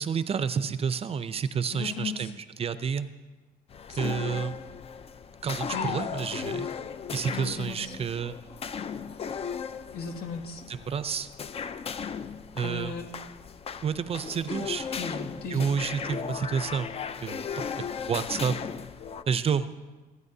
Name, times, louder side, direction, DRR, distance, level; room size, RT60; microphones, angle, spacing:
voice 1, 0.0-2.3 2.6-3.1 3.9-4.5 5.4-6.8 7.1-8.4 10.9-11.3 12.5-12.9 13.8-14.9 15.5-16.9 17.2-18.6 19.3-19.7, right 6 dB, 35° right, 13 dB, 0.5 m, -29 dB
voice 2, 1.7-2.3 3.9-4.2 5.7-6.0 7.3-8.0 9.9-10.6 12.6-13.1 14.2-14.3 15.0-15.8, left 5 dB, 70° left, 2 dB, 2.0 m, -36 dB
sound 1, 3.7-19.2, left 6 dB, 35° left, 0.5 m, -36 dB
26.5 x 9.4 x 2.7 m, 1.3 s
cardioid pair, 110°, 17 cm